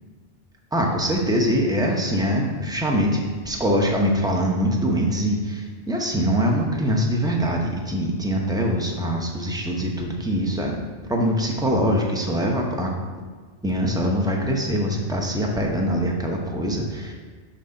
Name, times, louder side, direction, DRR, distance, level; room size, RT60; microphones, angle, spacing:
voice 1, 0.7-10.8 11.1-12.9 13.6-17.1, equal, 5° right, 0 dB, 0.6 m, -23 dB
6.0 x 4.2 x 5.3 m, 1.5 s
omnidirectional pair, 1.2 m